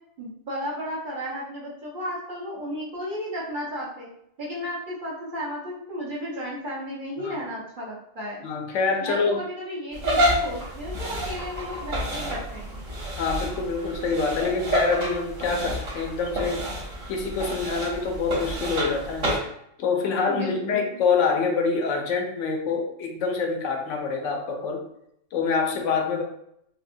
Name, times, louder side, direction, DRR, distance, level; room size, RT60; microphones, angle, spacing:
voice 1, 0.2-4.1 4.4-8.4 9.0-12.8 20.3-20.8, equal, 45° right, -7 dB, 1.1 m, -34 dB
voice 2, 8.4-9.4 13.2-16.6 17.1-19.3 19.8-24.8 25.3-26.2, left 4 dB, 75° left, 3 dB, 0.9 m, -26 dB
sound 1, 9.9-19.4, equal, 85° right, 1.5 m, -29 dB
4.7 x 2.0 x 2.6 m, 0.75 s
omnidirectional pair, 1.3 m